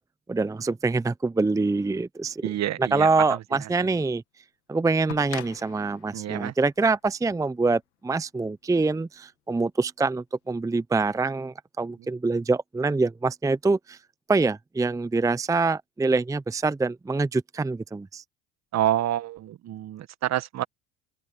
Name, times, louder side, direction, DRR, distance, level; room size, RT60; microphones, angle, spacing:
voice 1, 0.3-2.4 2.8-4.2 4.7-14.0 14.3-18.2, right 3 dB, 10° right, 0.7 m, -25 dB
voice 2, 2.4-3.7 6.1-6.5 12.0-12.1 18.7-20.6, right 12 dB, 50° right, 1.5 m, -28 dB
sound 1, 5.1-7.9 9.1-9.2, left 20 dB, 80° left, 2.5 m, -43 dB
open air
hypercardioid pair, 75°, 35 cm